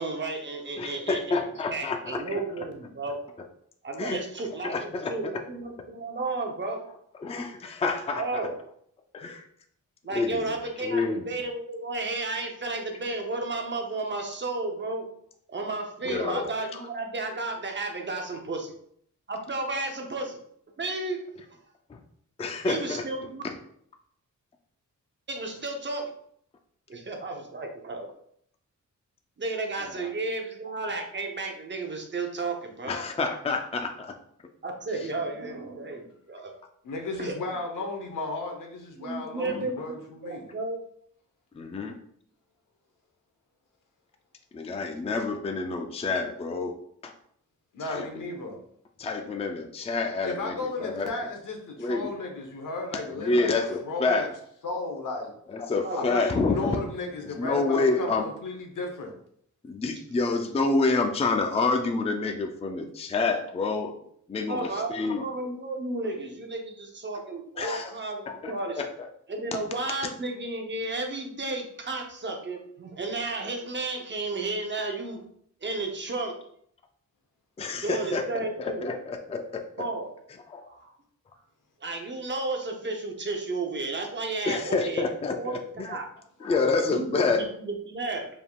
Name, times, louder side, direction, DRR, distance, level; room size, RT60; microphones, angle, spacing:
voice 1, 0.0-1.4 1.7-3.2 3.8-6.9 8.2-8.5 10.0-15.1 15.5-18.7 19.3-20.4 20.8-21.3 22.7-23.4 25.3-26.1 26.9-28.1 29.4-32.9 34.6-36.5 37.2-37.4 39.0-40.8 55.8-56.1 64.4-68.8 69.3-75.2 75.6-76.4 77.7-78.9 79.8-80.1 80.7-80.9 81.8-85.0 85.3-86.1 86.9-88.3, right 2 dB, 35° right, 3 dB, 0.7 m, -33 dB
voice 2, 0.8-2.4 4.0-4.2 4.6-5.3 7.2-8.4 9.1-9.4 10.1-10.5 10.8-11.2 16.0-16.5 21.9-22.0 22.4-23.0 23.4-23.5 30.0-30.1 32.8-34.1 39.5-39.9 41.5-42.0 44.5-46.8 47.0-47.1 47.9-48.1 49.0-51.1 51.8-52.1 53.2-54.3 55.5-56.8 57.2-58.3 59.6-63.9 64.3-65.2 67.6-67.9 68.3-69.1 77.6-78.2 78.6-79.6 80.5-80.6 84.5-86.0 86.4-87.4, left 3 dB, 20° left, 5 dB, 0.4 m, -28 dB
voice 3, 36.8-40.5 47.7-48.6 50.2-53.6 53.8-54.3 54.6-55.3 55.9-58.1 58.4-59.1, left 3 dB, 85° left, 2 dB, 1.0 m, -34 dB
4.8 x 3.6 x 2.3 m, 0.66 s
wide cardioid pair, 135°, 31 cm